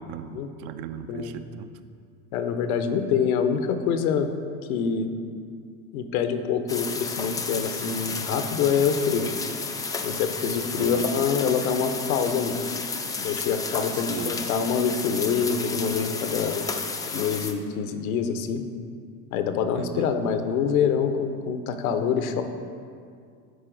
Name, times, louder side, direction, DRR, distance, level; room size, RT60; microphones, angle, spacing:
voice 1, 0.0-1.7 10.7-11.1 13.9-14.4 19.7-20.1, right 8 dB, 55° right, 10 dB, 0.5 m, -37 dB
voice 2, 2.3-4.3 4.7-5.1 5.9-9.3 10.0-12.6 13.2-16.6 17.1-18.6 19.3-22.4, left 7 dB, 75° left, 8 dB, 0.8 m, -25 dB
sound 1, 6.7-17.5, left 4 dB, 10° left, 0.3 m, -32 dB
12.0 x 4.1 x 3.8 m, 2.2 s
hypercardioid pair, 85°, 43 cm